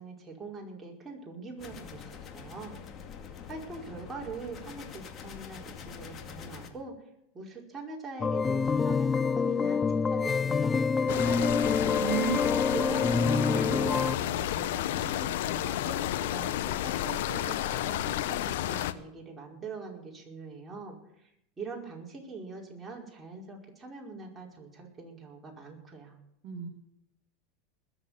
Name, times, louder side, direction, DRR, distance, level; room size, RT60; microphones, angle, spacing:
voice 1, 0.0-2.8 3.4-6.9 7.3-11.9 12.7-21.3 21.6-26.2, right 3 dB, 15° right, -2 dB, 5.2 m, -43 dB
sound 1, 1.6-6.7, left 7 dB, 40° left, 2.2 m, -45 dB
sound 2, 8.2-14.2, left 5 dB, 20° left, 0.5 m, -27 dB
sound 3, 11.1-18.9, left 13 dB, 70° left, 0.8 m, -31 dB
voice 2, 12.0-12.6 26.4-26.7, right 8 dB, 55° right, 3 dB, 1.8 m, -32 dB
20.5 x 7.4 x 7.2 m, 0.77 s
hypercardioid pair, 105°, 0 cm